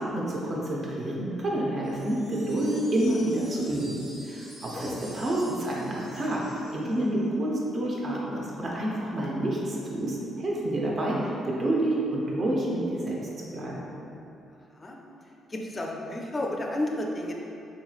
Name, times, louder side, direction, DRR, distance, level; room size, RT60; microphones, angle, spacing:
voice 1, 0.0-4.0 4.2-13.9, right 1 dB, 45° right, -4 dB, 0.7 m, -28 dB
sound 1, 1.8-7.2, equal, 85° right, 1.2 m, -48 dB
voice 2, 15.5-17.3, left 1 dB, 30° left, 0 dB, 0.4 m, -32 dB
3.9 x 2.9 x 2.4 m, 2.8 s
cardioid pair, 90°, 0 cm